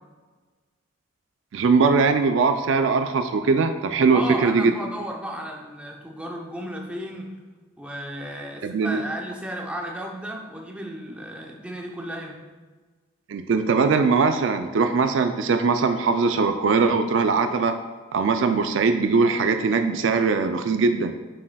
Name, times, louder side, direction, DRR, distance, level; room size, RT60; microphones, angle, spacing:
voice 1, 1.5-4.7 8.6-9.0 13.3-17.7 18.1-21.1, right 4 dB, 60° right, 7 dB, 0.3 m, -21 dB
voice 2, 4.1-7.3 7.8-12.4, equal, 5° right, 0 dB, 0.6 m, -34 dB
7.5 x 6.3 x 2.2 m, 1.3 s
head